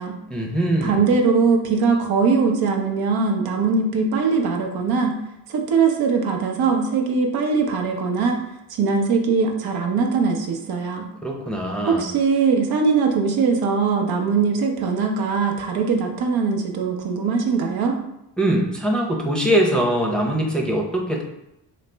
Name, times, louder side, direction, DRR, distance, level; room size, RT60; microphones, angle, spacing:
voice 1, 0.3-1.1 11.2-12.0 18.4-21.2, right 1 dB, ahead, 0 dB, 0.6 m, -22 dB
voice 2, 0.8-5.2 5.5-8.4 8.7-11.1 11.9-18.0, right 5 dB, 70° right, 2 dB, 0.7 m, -21 dB
4.1 x 2.0 x 3.3 m, 0.86 s
cardioid pair, 80°, 39 cm